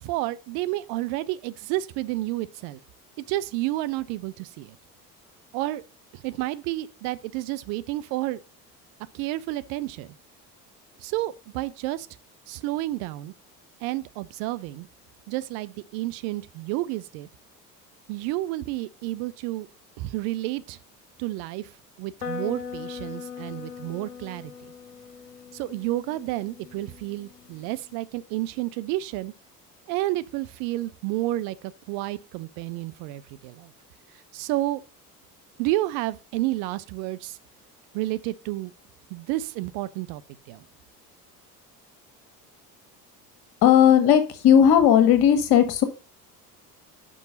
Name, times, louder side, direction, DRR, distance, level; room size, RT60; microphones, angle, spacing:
voice 1, 0.0-2.8 3.3-4.8 5.5-5.8 6.1-8.4 9.1-10.1 11.0-12.1 12.5-13.3 13.8-14.9 15.3-17.3 18.1-19.7 20.0-20.8 21.2-21.7 22.0-24.5 25.5-29.3 29.9-33.7 34.3-34.8 35.6-37.4 37.9-38.7 39.1-40.2 40.5-40.6, right 16 dB, 50° right, 0.6 m, -30 dB
sound 1, 22.2-28.0, left 6 dB, 80° left, 0.9 m, -40 dB
voice 2, 43.6-45.8, left 9 dB, 50° left, 1.5 m, -16 dB
6.1 x 5.3 x 6.5 m
figure-of-eight pair, 60°, 48 cm